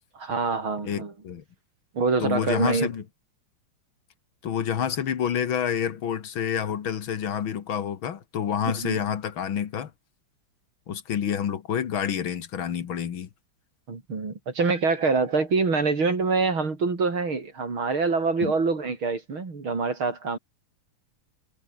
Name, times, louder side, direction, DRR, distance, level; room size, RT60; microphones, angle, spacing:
voice 1, 0.1-1.1 1.9-2.9 8.7-9.0 13.9-20.4, right 4 dB, 70° right, 4.9 m, -25 dB
voice 2, 0.8-1.4 2.2-3.0 4.4-9.9 10.9-13.3 18.4-18.5, left 8 dB, 70° left, 2.3 m, -28 dB
omnidirectional pair, 2.3 m